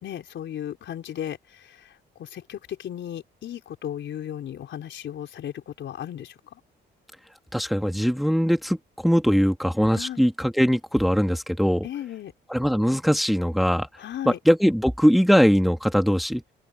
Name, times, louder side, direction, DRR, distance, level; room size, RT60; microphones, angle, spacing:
voice 1, 0.0-6.6 9.9-10.2 11.8-12.3 14.0-14.4, left 10 dB, 70° left, 4.5 m, -35 dB
voice 2, 7.5-8.8 9.0-11.9 12.5-13.9 14.3-16.4, equal, ahead, 2.1 m, -21 dB
open air
cardioid pair, 90°, 20 cm